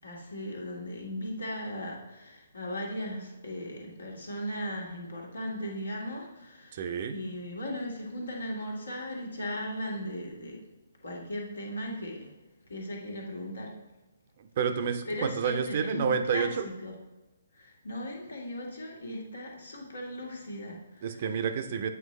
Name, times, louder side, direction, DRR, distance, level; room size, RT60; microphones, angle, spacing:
voice 1, 0.0-10.6 11.0-12.3 12.7-13.7 15.0-16.9 17.5-21.3, left 1 dB, 70° left, -1 dB, 1.7 m, -37 dB
voice 2, 6.7-7.2 14.4-16.6 21.0-21.9, right 6 dB, 45° right, 8 dB, 0.5 m, -29 dB
8.1 x 4.5 x 3.2 m, 1.1 s
figure-of-eight pair, 130°, 0 cm